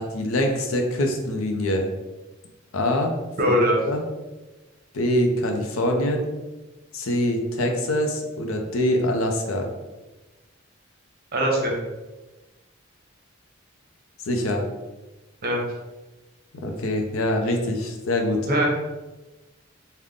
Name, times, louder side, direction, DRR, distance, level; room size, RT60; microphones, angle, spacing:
voice 1, 0.0-1.9 2.7-3.1 3.5-3.6 3.8-4.0 4.9-6.3 6.9-9.7 14.3-14.6 16.6-18.4, left 1 dB, 90° left, 3 dB, 0.6 m, -24 dB
voice 2, 3.4-3.8 11.3-11.8 15.4-15.6 18.4-18.8, equal, 50° right, 0 dB, 0.8 m, -21 dB
3.6 x 2.2 x 3.6 m, 1.1 s
head